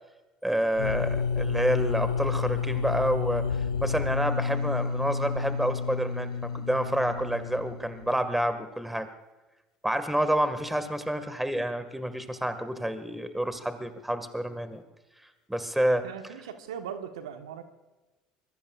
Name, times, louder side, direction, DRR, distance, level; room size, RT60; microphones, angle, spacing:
voice 1, 0.4-3.4 3.8-9.1 9.8-14.8 15.5-16.1, right 1 dB, 5° right, 10 dB, 1.8 m, -28 dB
sound 1, 0.8-8.5, left 6 dB, 80° left, 0.5 m, -30 dB
voice 2, 16.0-17.6, right 8 dB, 75° right, 7 dB, 1.3 m, -39 dB
25.5 x 22.5 x 2.5 m, 1.1 s
hypercardioid pair, 65°, 3 cm